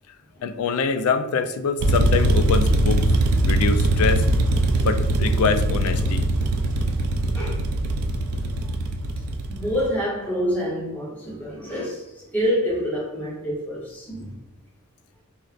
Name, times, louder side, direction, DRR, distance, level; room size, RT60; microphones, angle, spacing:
voice 1, 0.4-3.1 3.5-4.3 4.8-6.2, left 5 dB, 75° left, 0.3 m, -24 dB
sound 1, 1.8-9.9, right 1 dB, 75° right, 0.3 m, -21 dB
voice 2, 9.5-12.0 12.3-14.4, equal, 10° left, 0.7 m, -27 dB
4.4 x 2.0 x 2.4 m
head